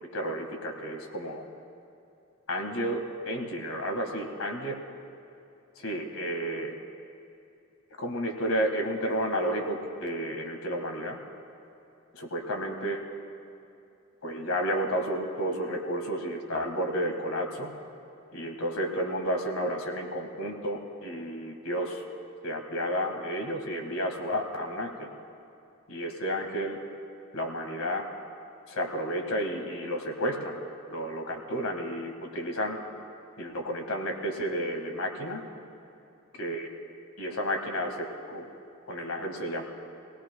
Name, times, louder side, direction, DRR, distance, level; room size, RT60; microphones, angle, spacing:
voice 1, 0.1-1.4 2.5-4.8 5.8-6.7 8.0-11.2 12.1-13.0 14.2-17.7 18.3-22.0 22.4-25.1 25.9-26.8 27.3-28.1 28.7-30.6 30.9-32.8 33.4-35.4 36.4-36.7 37.2-38.5 38.9-39.6, equal, 80° left, 3 dB, 1.7 m, -31 dB
26.0 x 17.5 x 2.3 m, 2.6 s
head